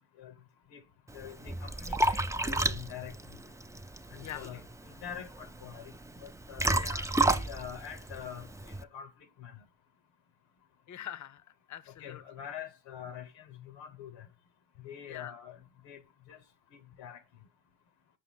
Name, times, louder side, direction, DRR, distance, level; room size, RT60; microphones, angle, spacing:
voice 1, 1.1-2.2 2.4-3.1 4.1-6.0 6.2-6.7 7.2-9.1 9.4-9.6 12.0-14.3 14.8-16.0 16.3-16.4 16.7-17.2, left 9 dB, 85° left, 0.9 m, -45 dB
Liquid, 1.1-8.8, right 2 dB, 10° right, 0.4 m, -32 dB
voice 2, 4.2-4.6 6.8-7.1 10.9-12.2 15.1-15.4, left 11 dB, 45° left, 0.6 m, -44 dB
5.8 x 5.6 x 6.7 m
hypercardioid pair, 40°, 43 cm